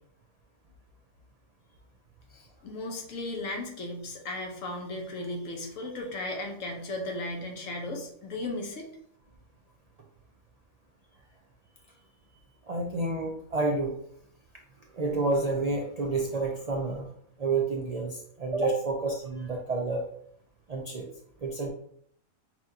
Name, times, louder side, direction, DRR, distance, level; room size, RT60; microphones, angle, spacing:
voice 1, 2.6-8.9, left 2 dB, 70° left, 2 dB, 1.2 m, -35 dB
voice 2, 12.7-13.9 14.9-17.1 17.4-20.1 20.7-21.1 21.4-21.7, right 3 dB, 85° right, 0 dB, 0.3 m, -29 dB
5.8 x 2.4 x 2.7 m, 0.68 s
omnidirectional pair, 1.4 m